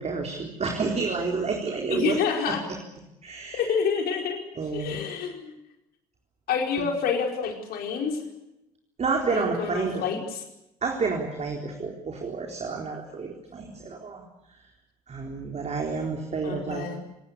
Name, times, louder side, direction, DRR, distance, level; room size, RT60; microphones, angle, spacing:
voice 1, 0.0-2.2 2.5-2.6 3.2-3.8 4.6-5.0 6.8-6.9 9.0-10.0 10.8-14.2 14.5-14.7 15.1-16.9, right 4 dB, 35° right, 1 dB, 4.1 m, -30 dB
voice 2, 1.9-2.6 3.5-4.4 4.7-5.5 6.5-8.2 9.3-10.4 16.4-17.0, left 6 dB, 60° left, 3 dB, 4.9 m, -28 dB
28.5 x 19.0 x 8.4 m, 0.92 s
figure-of-eight pair, 50°, 19 cm